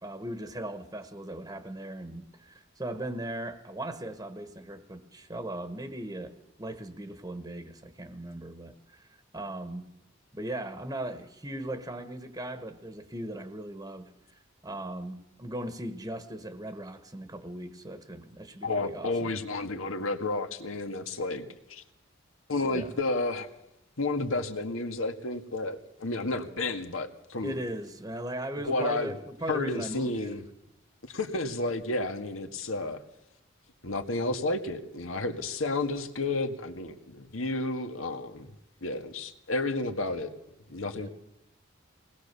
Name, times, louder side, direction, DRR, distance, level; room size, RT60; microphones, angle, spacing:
voice 1, 0.0-9.1 9.3-9.9 10.3-14.1 14.6-19.3 22.6-22.9 27.4-30.4 41.0-41.1, right 1 dB, 20° right, 1.2 m, -38 dB
voice 2, 18.6-21.8 22.5-23.5 24.0-27.6 28.6-29.2 29.5-30.4 31.0-33.0 33.8-38.5 38.8-40.3 40.7-41.1, left 2 dB, 85° left, 1.8 m, -31 dB
22.5 x 19.5 x 6.8 m
head